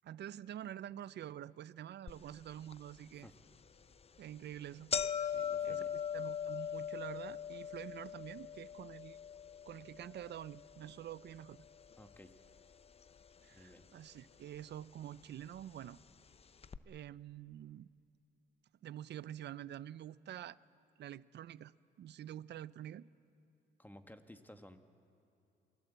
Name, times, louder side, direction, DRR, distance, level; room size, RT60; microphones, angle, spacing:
voice 1, 0.0-3.3 4.2-4.9 5.2-5.3 5.6-5.8 6.1-9.2 9.7-11.6 13.4-16.0 16.9-17.9 18.8-20.6 21.0-21.7 22.0-23.1, right 11 dB, 60° right, 18 dB, 0.6 m, -47 dB
sound 1, 2.1-2.2 2.7-2.8 3.6-3.8 4.2-4.3 4.5-12.7 13.0-13.7 14.5-14.6 15.6-15.7 16.0-16.1 16.6-16.8, left 7 dB, 30° left, 0.6 m, -41 dB
voice 2, 5.3-6.0 12.0-12.3 13.5-13.9 23.8-24.8, left 1 dB, 10° left, 7 dB, 1.6 m, -56 dB
28.0 x 18.5 x 8.1 m, 2.7 s
cardioid pair, 90°, 20 cm